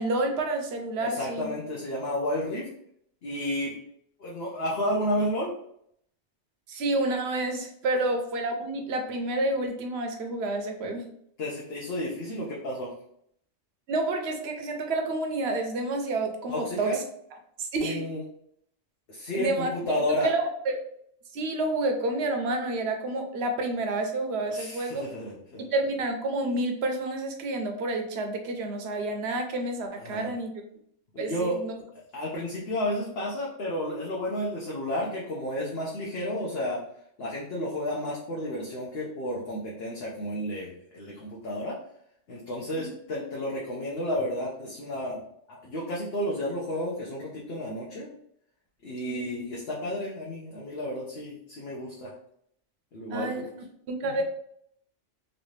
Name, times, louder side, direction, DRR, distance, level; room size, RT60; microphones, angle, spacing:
voice 1, 0.0-1.5 6.7-11.1 13.9-17.0 17.6-18.0 19.3-19.7 20.2-20.8 21.3-25.0 25.6-30.5 31.2-31.7 42.7-42.9 49.1-49.2 53.1-53.4 53.9-54.2, right 2 dB, 65° right, 4 dB, 0.8 m, -29 dB
voice 2, 1.0-2.7 3.2-3.7 4.2-5.5 11.4-12.9 16.5-17.0 17.8-18.2 19.1-20.3 24.5-25.6 30.0-30.3 31.1-31.6 32.1-36.8 37.2-41.8 42.3-45.2 45.5-48.1 48.8-52.1 52.9-53.4 54.0-54.2, equal, 60° left, -4 dB, 0.9 m, -31 dB
3.2 x 2.7 x 3.1 m, 0.69 s
omnidirectional pair, 1.3 m